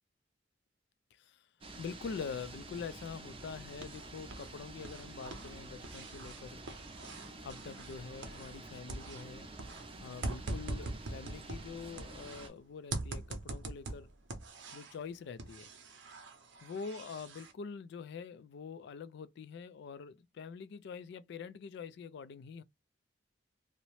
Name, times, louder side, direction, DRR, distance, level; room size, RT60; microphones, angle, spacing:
sound 1, 1.6-12.5, right 2 dB, 30° right, 0.6 m, -49 dB
voice 1, 1.8-6.6 7.4-9.5 10.0-14.1 14.7-15.7 16.6-22.6, left 5 dB, 60° left, 0.3 m, -45 dB
sound 2, 3.4-4.5 4.8-8.6 8.9-12.5 12.9-15.0 15.4-17.5, right 2 dB, 70° right, 0.7 m, -43 dB
2.7 x 2.0 x 3.0 m
head